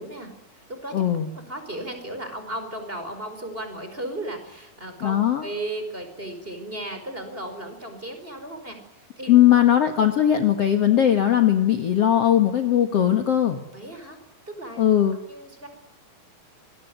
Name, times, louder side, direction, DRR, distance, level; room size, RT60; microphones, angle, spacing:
voice 1, 0.0-1.0 1.5-9.6 13.7-14.2 14.5-14.9 15.3-15.7, right 1 dB, 15° right, 7 dB, 5.1 m, -35 dB
voice 2, 0.9-1.3 5.0-5.5 9.3-13.6 14.8-15.2, left 11 dB, 50° left, 6 dB, 2.3 m, -19 dB
26.5 x 21.0 x 9.6 m, 0.93 s
omnidirectional pair, 4.1 m